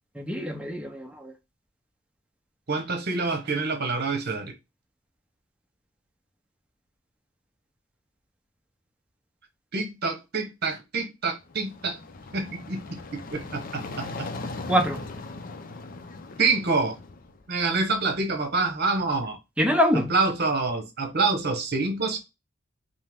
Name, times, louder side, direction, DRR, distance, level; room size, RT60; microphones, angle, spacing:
voice 1, 0.1-1.3 14.7-15.0 19.6-20.1, equal, 5° right, 0.8 m, -24 dB
voice 2, 2.7-4.5 9.7-12.0 12.3-14.3 16.4-17.0 17.5-19.4 20.1-22.2, right 3 dB, 55° right, 1.0 m, -27 dB
sound 1, 11.4-17.4, left 3 dB, 45° left, 0.6 m, -39 dB
5.4 x 2.1 x 3.6 m
head